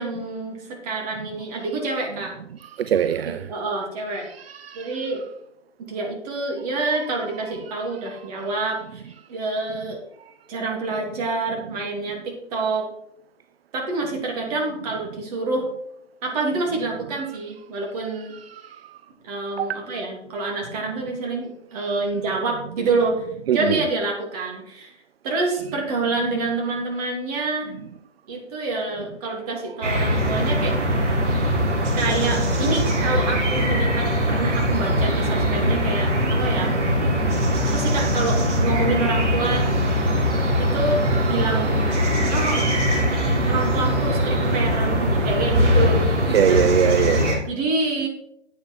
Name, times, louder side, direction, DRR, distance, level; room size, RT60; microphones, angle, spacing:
voice 1, 0.0-2.3 3.3-4.3 4.7-5.2 5.9-10.0 10.5-12.9 13.7-15.7 16.2-18.4 19.2-23.3 23.5-24.9 25.2-27.7 28.3-30.8 31.9-36.8 37.7-39.7 40.6-41.0 41.3-41.9 42.3-42.7 43.5-46.0 46.4-46.8 47.5-48.1, right 3 dB, 35° right, 2.9 m, -27 dB
voice 2, 2.9-3.4 4.4-4.9 19.6-19.7 23.5-23.8 41.2-41.3 46.3-47.4, right 9 dB, 55° right, 0.5 m, -21 dB
sound 1, 29.8-47.4, equal, 80° right, 3.7 m, -21 dB
9.4 x 8.7 x 4.6 m
hypercardioid pair, 145°, 35 cm